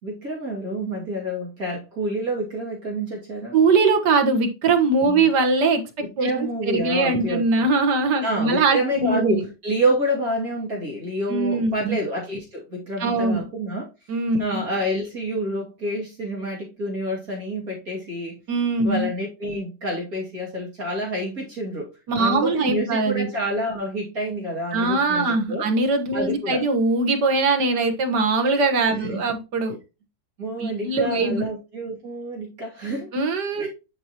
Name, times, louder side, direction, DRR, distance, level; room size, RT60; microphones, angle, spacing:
voice 1, 0.0-3.6 5.1-5.3 6.0-7.6 8.2-13.9 14.4-18.4 18.8-21.9 22.1-25.7 26.1-26.6 28.9-29.2 30.4-33.1 33.6-33.7, right 1 dB, 60° right, -3 dB, 3.0 m, -28 dB
voice 2, 3.5-5.8 6.2-6.3 6.7-9.4 11.3-12.0 13.0-13.4 14.1-14.6 18.5-19.1 22.1-23.3 24.7-29.8 30.6-31.4 33.1-33.7, right 3 dB, 85° right, 5 dB, 2.0 m, -21 dB
10.0 x 5.4 x 2.9 m, 0.28 s
omnidirectional pair, 1.8 m